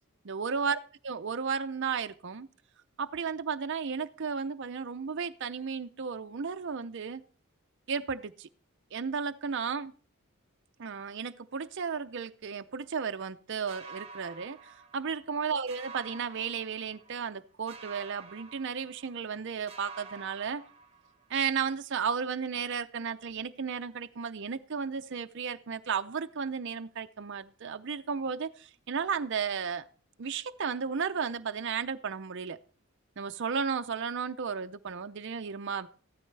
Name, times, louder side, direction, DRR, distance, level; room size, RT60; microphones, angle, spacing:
voice 1, 0.3-2.5 3.0-7.2 7.9-8.5 8.9-9.9 10.8-20.6 21.3-29.9 30.2-32.6 33.2-35.9, right 6 dB, 55° right, 7 dB, 0.5 m, -34 dB
sound 1, 13.7-15.4 15.7-17.3 17.7-19.4 19.7-21.4, right 5 dB, 25° right, 1.2 m, -49 dB
14.5 x 12.5 x 3.3 m, 0.39 s
head